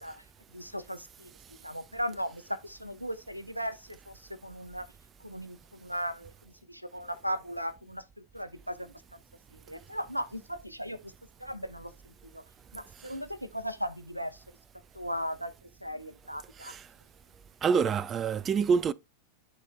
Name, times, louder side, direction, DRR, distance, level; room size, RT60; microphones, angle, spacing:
voice 1, 0.5-4.9 5.2-9.2 9.5-11.1 11.4-12.4 12.7-14.4 14.9-16.7, equal, 90° right, 0.7 m, -37 dB
voice 2, 17.6-18.9, right 6 dB, 25° right, 0.4 m, -26 dB
11.0 x 4.3 x 3.4 m
figure-of-eight pair, 90°, 0 cm